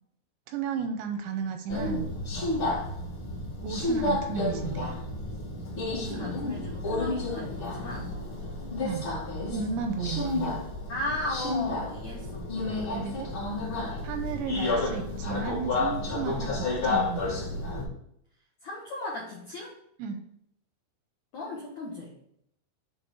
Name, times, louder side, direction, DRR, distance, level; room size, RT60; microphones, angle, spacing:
voice 1, 0.5-2.1 3.6-5.0 8.8-9.1 9.5-10.6 12.9-13.3 14.0-17.3 20.0-20.2, right 6 dB, 85° right, 7 dB, 2.7 m, -34 dB
Subway metro underground, 1.7-17.8, left 2 dB, 55° left, 1.4 m, -31 dB
voice 2, 5.9-8.2 9.5-9.7 10.9-12.5 18.6-19.8 21.3-22.1, left 2 dB, 80° left, -4 dB, 1.6 m, -36 dB
7.8 x 3.8 x 6.7 m, 0.71 s
omnidirectional pair, 5.5 m